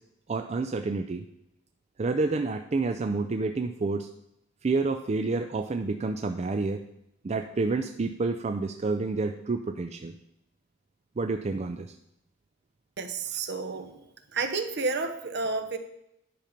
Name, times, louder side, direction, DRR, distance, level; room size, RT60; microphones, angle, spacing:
voice 1, 0.3-1.2 2.0-4.1 4.6-6.8 7.2-10.1 11.2-11.9, right 3 dB, 35° right, 7 dB, 0.4 m, -29 dB
voice 2, 13.0-14.0 14.3-15.8, right 3 dB, 60° right, 8 dB, 0.9 m, -31 dB
10.0 x 5.7 x 5.2 m, 0.80 s
head